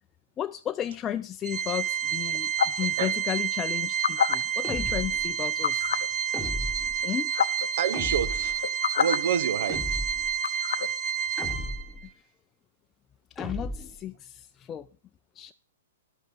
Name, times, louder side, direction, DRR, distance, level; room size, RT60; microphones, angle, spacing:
voice 1, 0.4-5.9 7.0-7.3 12.0-12.1 13.3-14.9 15.3-15.5, left 11 dB, 25° left, 0.5 m, -34 dB
Organ, 1.4-12.0, right 8 dB, 25° right, 1.9 m, -29 dB
sound 1, 2.6-2.9 3.8-4.3 5.6-6.1 7.0-7.1 7.3-7.7 8.5-9.2 10.4-10.9, left 7 dB, 75° left, 0.7 m, -26 dB
sound 2, 4.6-5.3 6.3-7.0 7.9-8.6 9.7-10.3 11.4-12.0 13.4-14.0, left 1 dB, 10° left, 1.3 m, -35 dB
voice 2, 7.8-8.7 9.0-10.0, right 8 dB, 65° right, 0.8 m, -28 dB
11.5 x 7.8 x 5.4 m
hypercardioid pair, 125°, 0 cm